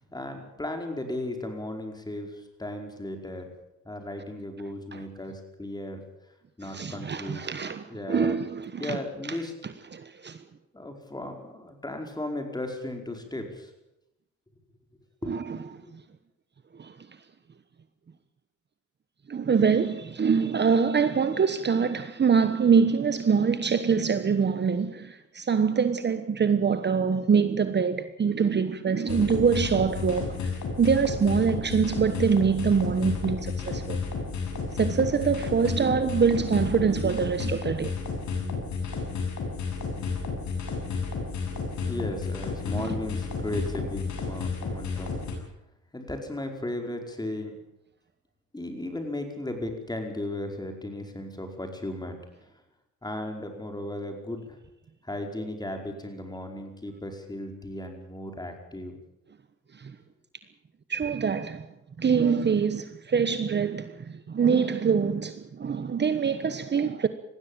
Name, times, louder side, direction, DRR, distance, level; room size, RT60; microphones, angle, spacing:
voice 1, 0.1-3.5 3.8-6.0 6.6-7.4 7.9-8.4 8.8-9.5 10.7-13.7 15.2-15.3 15.8-15.9 41.9-45.2 45.9-47.6 48.5-52.2 53.0-54.6 55.0-58.9, left 1 dB, 15° left, 4.9 m, -35 dB
voice 2, 6.6-9.0 9.9-10.4 15.3-15.6 15.9-16.0 16.8-17.0 19.3-30.4 30.8-34.0 34.7-37.9 42.7-42.9 59.7-59.9 60.9-61.6 62.0-67.1, right 6 dB, 35° right, 1.2 m, -24 dB
sound 1, 29.1-45.3, left 4 dB, 65° left, 7.1 m, -32 dB
20.0 x 15.0 x 8.9 m
cardioid pair, 90°, 30 cm